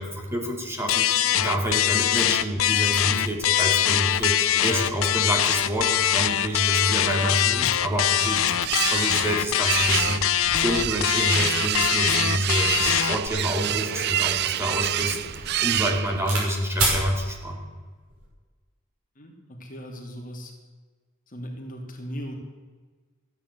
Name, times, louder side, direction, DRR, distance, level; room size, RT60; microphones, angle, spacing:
voice 1, 0.0-17.6, equal, 10° right, 1 dB, 2.6 m, -28 dB
sound 1, 0.9-13.3, left 11 dB, 65° left, 0.7 m, -23 dB
sound 2, 7.6-16.5, right 12 dB, 50° right, 0.4 m, -28 dB
sound 3, 13.6-16.5 16.8-17.0 17.9-18.3, right 2 dB, 85° right, 6.1 m, -30 dB
voice 2, 19.2-20.5 21.3-22.3, equal, 40° left, 1 dB, 3.0 m, -38 dB
15.0 x 10.0 x 8.2 m, 1.4 s
head